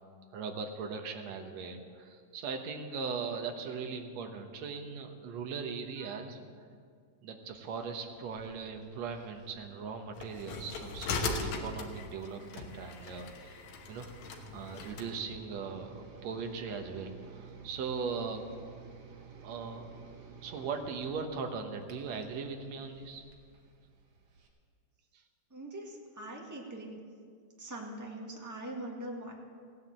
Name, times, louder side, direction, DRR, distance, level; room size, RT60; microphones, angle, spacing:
voice 1, 0.3-6.5 7.2-13.6 13.9-14.1 14.5-18.5 19.4-19.9 20.4-23.2, right 5 dB, 65° right, 5 dB, 2.2 m, -39 dB
sound 1, 7.4-24.5, right 5 dB, 85° right, 3.2 m, -54 dB
sound 2, 10.2-15.1, left 4 dB, 70° left, 2.5 m, -39 dB
voice 2, 25.5-27.0 27.6-29.3, right 1 dB, 10° right, -1 dB, 1.0 m, -42 dB
16.5 x 9.7 x 7.4 m, 2.1 s
omnidirectional pair, 3.5 m